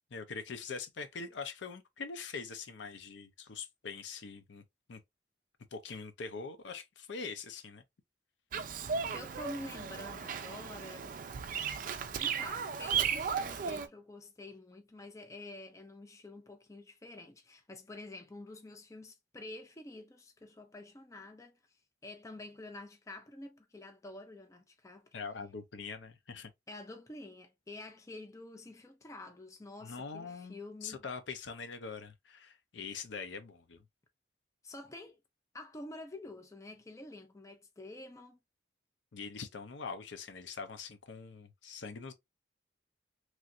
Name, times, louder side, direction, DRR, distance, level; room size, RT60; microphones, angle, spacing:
voice 1, 0.1-4.6 4.9-5.0 5.7-7.8 25.1-26.5 29.8-33.8 39.1-42.1, left 5 dB, 80° left, 0.5 m, -43 dB
Bird vocalization bird call bird song, 8.5-13.9, right 7 dB, 50° right, 0.4 m, -35 dB
voice 2, 9.1-11.1 12.2-21.6 22.0-25.1 26.7-31.0 34.6-35.2 35.5-38.4, left 2 dB, 15° left, 0.5 m, -48 dB
3.1 x 2.4 x 2.6 m
head